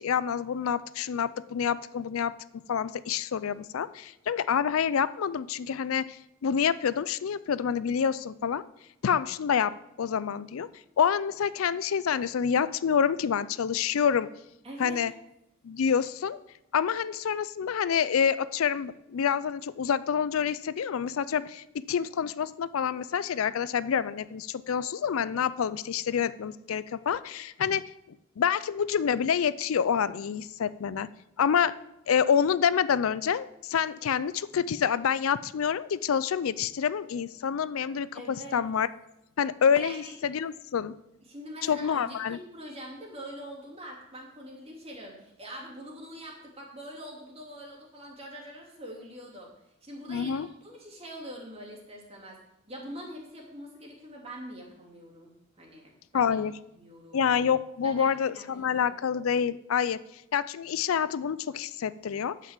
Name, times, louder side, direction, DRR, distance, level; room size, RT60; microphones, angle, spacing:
voice 1, 0.0-2.3 2.7-6.2 6.4-8.6 9.0-10.7 11.0-14.3 14.8-15.1 15.6-16.4 16.7-27.8 28.4-31.1 31.4-31.7 32.1-38.9 39.4-41.0 41.6-42.4 50.1-50.5 56.1-56.5 57.1-60.0 60.3-62.5, left 7 dB, 80° left, 17 dB, 0.4 m, -27 dB
voice 2, 14.6-15.0 38.1-38.6 39.7-40.1 41.3-49.5 49.8-52.4 52.7-56.4 56.7-57.3 57.8-58.9, equal, 30° right, -2 dB, 2.7 m, -44 dB
9.3 x 5.8 x 7.3 m, 0.82 s
head